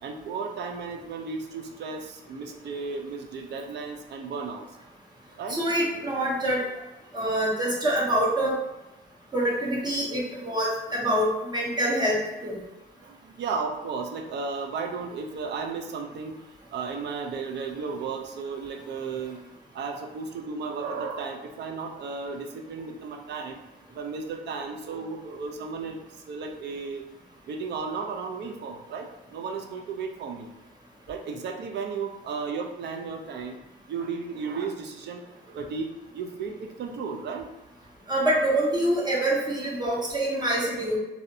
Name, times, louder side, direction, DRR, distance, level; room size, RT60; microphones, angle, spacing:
voice 1, 0.0-4.7 5.4-5.6 13.0-16.4 16.7-19.4 19.7-23.6 23.9-27.0 27.5-30.5 31.1-33.6 33.9-37.5, right 5 dB, 70° right, 4 dB, 0.4 m, -34 dB
voice 2, 5.5-6.6 7.1-8.5 9.3-12.2 12.4-12.6 38.1-41.0, right 1 dB, 25° right, -5 dB, 0.6 m, -25 dB
2.6 x 2.0 x 2.6 m, 0.98 s
cardioid pair, 145°, 19 cm